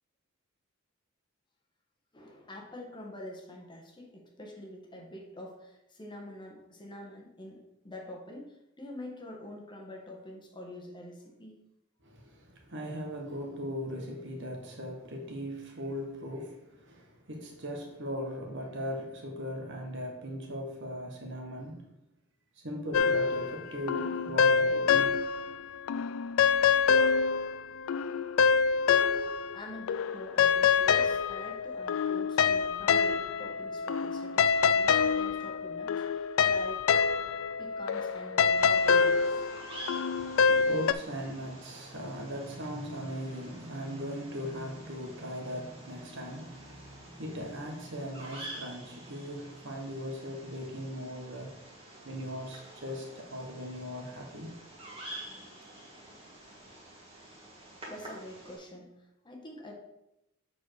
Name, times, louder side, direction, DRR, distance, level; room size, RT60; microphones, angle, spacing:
voice 1, 2.1-11.6 29.5-36.9 37.6-39.5 57.9-59.7, left 1 dB, 20° left, 1.2 m, -46 dB
voice 2, 12.0-21.9 22.6-25.2 40.1-51.6 52.0-54.6, equal, 55° right, 1.4 m, -39 dB
sound 1, 22.9-25.6 25.9-29.6 29.9-40.9, left 6 dB, 70° left, 0.3 m, -26 dB
Bird vocalization bird call bird song, 38.6-58.6, right 1 dB, 25° right, 2.1 m, -48 dB
7.1 x 4.5 x 4.8 m
head